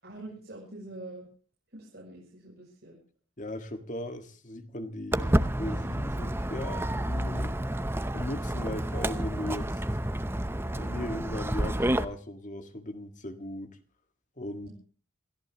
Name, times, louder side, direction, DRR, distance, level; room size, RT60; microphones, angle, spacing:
voice 1, 0.0-1.3 1.7-3.0 14.6-14.7, right 2 dB, 55° right, 7.1 m, -45 dB
voice 2, 3.4-7.6 8.1-9.8 10.7-13.7 14.4-14.7, left 1 dB, 40° left, 1.8 m, -38 dB
Walk footsteps, 5.1-12.0, right 1 dB, 10° right, 0.7 m, -29 dB
28.0 x 14.5 x 3.0 m
head